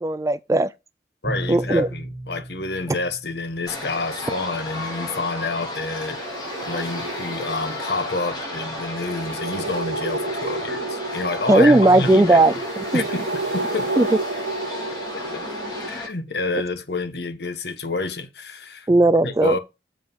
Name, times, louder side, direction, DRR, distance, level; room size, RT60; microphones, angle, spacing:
voice 1, 0.0-0.7 1.5-1.9 11.5-12.6 12.9-13.0 14.0-14.1 18.9-19.6, right 2 dB, 15° right, 0.3 m, -16 dB
voice 2, 1.2-6.2 6.6-12.4 12.9-13.9 14.9-15.0 15.3-15.4 15.8-18.9 19.2-19.6, left 3 dB, 70° left, 1.4 m, -28 dB
Bowed string instrument, 1.2-4.0, right 1 dB, 5° left, 3.1 m, -34 dB
sound 1, 3.7-16.1, left 1 dB, 25° left, 3.7 m, -33 dB
sound 2, 6.0-15.9, right 2 dB, 85° right, 1.1 m, -32 dB
7.5 x 5.0 x 5.4 m
head